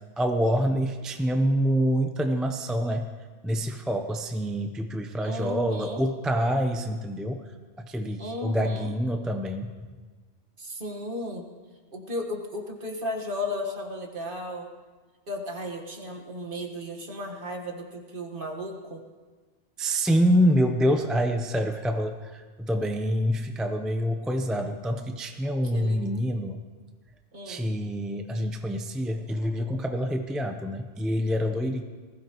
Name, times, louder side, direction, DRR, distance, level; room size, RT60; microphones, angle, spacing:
voice 1, 0.2-3.1 3.4-7.4 7.8-9.7 19.8-26.6 27.5-31.8, equal, ahead, 5 dB, 0.6 m, -26 dB
voice 2, 5.2-6.0 8.2-8.9 10.6-11.5 11.9-14.7 15.3-19.0 25.6-26.1 27.3-27.7, left 1 dB, 50° right, 2 dB, 1.7 m, -35 dB
20.0 x 15.5 x 3.0 m, 1.4 s
omnidirectional pair, 1.2 m